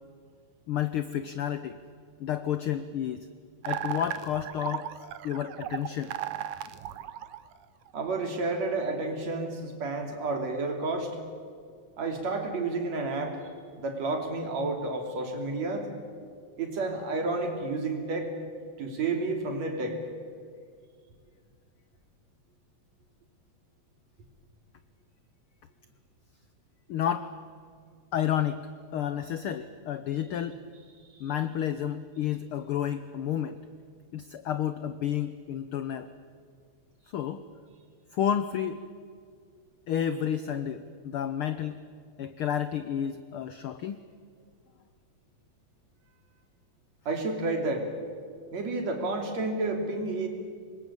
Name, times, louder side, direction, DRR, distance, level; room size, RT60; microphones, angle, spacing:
voice 1, 0.7-1.8 2.2-3.3 3.6-4.9 5.2-6.1 26.9-27.3 28.1-28.7 28.9-30.6 31.2-33.6 34.1-36.1 37.1-37.4 38.1-38.8 39.9-41.8 42.2-44.0, left 10 dB, 75° left, 12 dB, 1.2 m, -30 dB
sound 1, 3.6-7.9, right 11 dB, 90° right, 2.4 m, -36 dB
voice 2, 7.9-11.1 12.0-13.4 13.8-15.9 16.6-18.3 18.8-20.0 31.1-31.3 47.1-47.9 48.5-50.3, right 3 dB, 65° right, 3 dB, 4.2 m, -30 dB
25.5 x 21.5 x 8.7 m, 2.1 s
omnidirectional pair, 3.4 m